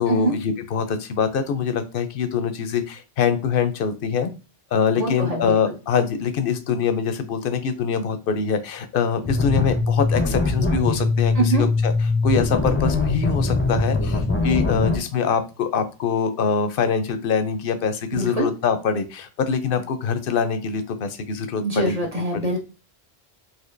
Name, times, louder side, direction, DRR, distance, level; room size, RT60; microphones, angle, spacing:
voice 1, 0.0-4.3 4.7-11.9 12.2-22.0 22.3-22.5, left 6 dB, 65° left, 9 dB, 0.7 m, -24 dB
voice 2, 5.0-5.6 11.3-11.6 18.1-18.5 21.6-22.6, right 2 dB, 40° right, 0 dB, 0.7 m, -24 dB
sound 1, 9.2-15.0, left 3 dB, 20° left, 0.4 m, -22 dB
4.3 x 2.5 x 2.5 m, 0.31 s
omnidirectional pair, 1.1 m